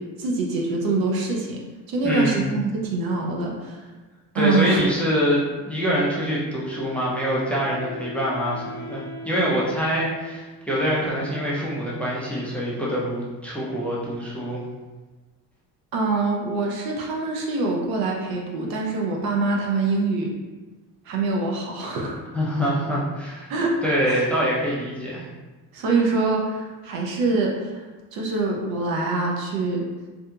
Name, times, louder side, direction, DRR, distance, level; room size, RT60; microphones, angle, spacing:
voice 1, 0.0-1.6 1.9-3.8 4.3-4.8 15.9-20.3 21.1-22.2 23.5-24.3 25.7-27.8 28.1-29.9, right 3 dB, 75° right, -1 dB, 0.7 m, -24 dB
voice 2, 2.0-2.5 4.3-14.6 22.3-23.5 23.8-25.3, equal, 5° left, -6 dB, 0.5 m, -25 dB
Wind instrument woodwind instrument, 6.6-11.7, left 1 dB, 15° right, 1.3 m, -41 dB
2.7 x 2.6 x 2.3 m, 1.2 s
cardioid pair, 125°, 36 cm